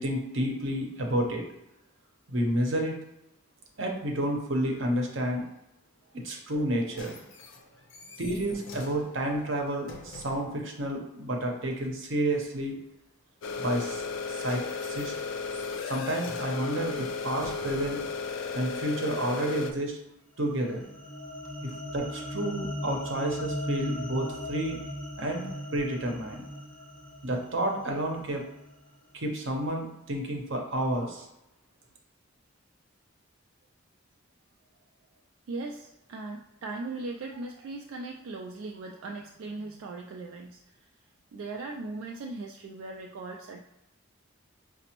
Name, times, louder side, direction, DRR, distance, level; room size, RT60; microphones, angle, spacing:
voice 1, 0.0-1.5 2.3-3.0 3.8-5.4 6.1-7.2 8.2-12.8 13.6-14.0 14.3-15.1 15.8-18.0 18.5-20.0 20.4-20.8 21.6-24.8 25.2-26.4 27.2-28.4 29.1-31.3, right 1 dB, 70° right, 1 dB, 0.7 m, -30 dB
sound 1, 6.6-10.6 14.0-18.2 18.9-19.0, left 2 dB, 85° left, 0.7 m, -47 dB
sound 2, 13.4-19.7, left 4 dB, 70° left, 0.3 m, -34 dB
sound 3, 20.4-28.9, left 1 dB, 5° left, 0.5 m, -38 dB
voice 2, 35.5-43.6, right 3 dB, 90° right, 2 dB, 0.3 m, -39 dB
5.1 x 2.0 x 2.9 m, 0.87 s
head